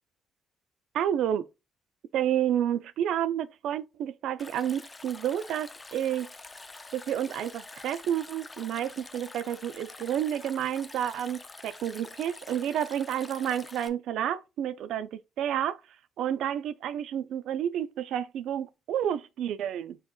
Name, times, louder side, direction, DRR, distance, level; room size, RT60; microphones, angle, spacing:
voice 1, 0.9-1.5 2.1-6.3 6.9-15.8 16.2-20.0, right 10 dB, 80° right, 0.3 m, -30 dB
Stream, 4.4-13.9, left 3 dB, 15° left, 0.5 m, -47 dB
4.4 x 4.4 x 2.3 m
cardioid pair, 135°, 0 cm